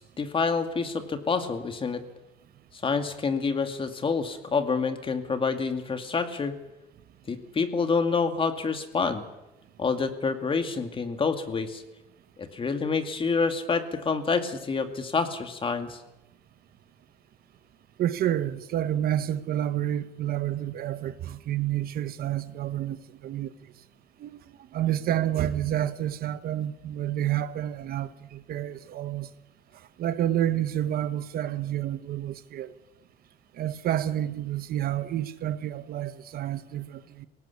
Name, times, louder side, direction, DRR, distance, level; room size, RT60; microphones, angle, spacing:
voice 1, 0.0-2.0 2.8-6.6 7.3-9.2 9.8-11.8 12.4-16.0, left 4 dB, 30° left, 2.3 m, -27 dB
voice 2, 18.0-23.5 24.2-24.4 24.7-29.3 30.0-32.7 33.5-37.3, right 11 dB, 65° right, 1.1 m, -29 dB
21.5 x 18.0 x 8.4 m
cardioid pair, 110°, 17 cm